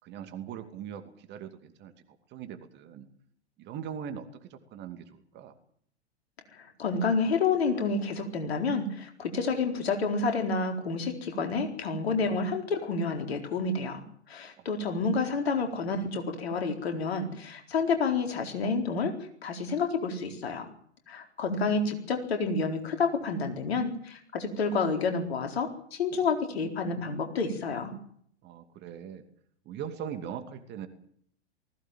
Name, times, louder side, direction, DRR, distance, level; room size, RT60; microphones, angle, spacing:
voice 1, 0.0-3.1 3.6-5.6 14.6-14.8 28.4-29.2 29.6-30.9, right 8 dB, 30° right, 9 dB, 2.6 m, -41 dB
voice 2, 6.6-14.0 14.3-19.1 19.4-20.7 21.1-27.9, left 4 dB, 60° left, 5 dB, 4.3 m, -29 dB
19.5 x 16.5 x 9.1 m, 0.64 s
figure-of-eight pair, 100°, 34 cm